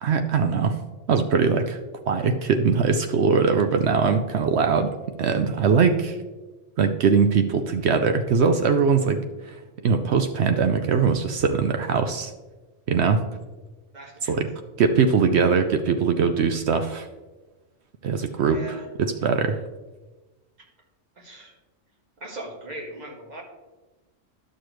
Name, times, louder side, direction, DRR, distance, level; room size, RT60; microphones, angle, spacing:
voice 1, 0.0-0.8 1.1-1.8 2.1-6.2 6.8-9.6 9.8-12.3 12.9-13.2 14.3-14.5 14.8-17.1 18.0-19.6, right 5 dB, 65° right, 7 dB, 0.8 m, -21 dB
voice 2, 13.9-14.4 18.5-18.8 21.2-21.5 22.2-23.4, right 1 dB, 35° right, -1 dB, 1.6 m, -39 dB
11.5 x 6.6 x 3.1 m, 1.2 s
omnidirectional pair, 1.3 m